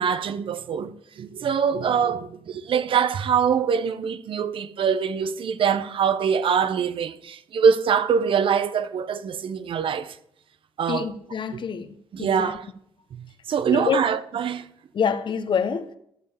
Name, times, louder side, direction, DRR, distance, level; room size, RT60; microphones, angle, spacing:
voice 1, 0.0-10.2 10.8-11.1 11.5-11.6 12.1-12.7 13.1-13.2 13.5-14.7, right 7 dB, 60° right, 0.8 m, -24 dB
voice 2, 10.9-11.9 12.2-12.5 13.7-14.0 14.9-15.9, left 6 dB, 55° left, 1.0 m, -26 dB
13.5 x 4.6 x 7.1 m
supercardioid pair, 65°, 10 cm